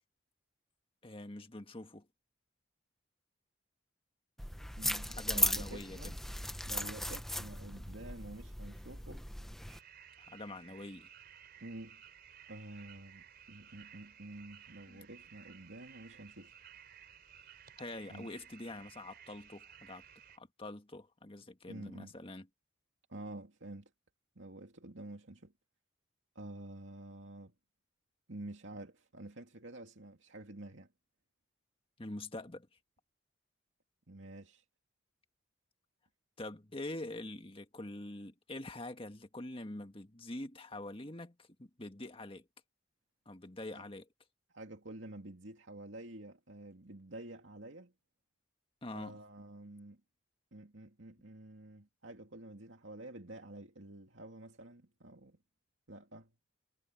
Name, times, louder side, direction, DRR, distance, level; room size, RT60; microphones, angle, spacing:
voice 1, 1.0-2.1 5.1-6.2 10.3-11.1 14.9-15.0 17.8-20.0 20.3-22.5 32.0-32.7 36.4-42.4 43.2-44.0 48.8-49.2, left 2 dB, 30° left, 1.7 m, -45 dB
sound 1, 4.4-9.8, left 1 dB, ahead, 0.8 m, -37 dB
voice 2, 4.8-6.2 6.6-9.2 11.6-12.0 12.5-16.5 18.1-18.3 21.7-22.1 23.1-23.9 24.4-25.5 26.3-27.5 28.3-30.9 34.1-34.6 43.7-43.8 44.5-47.9 48.9-50.0 50.5-55.4 55.9-56.3, right 1 dB, 75° right, 2.4 m, -49 dB
sound 2, 9.7-20.4, right 9 dB, 55° right, 4.8 m, -56 dB
head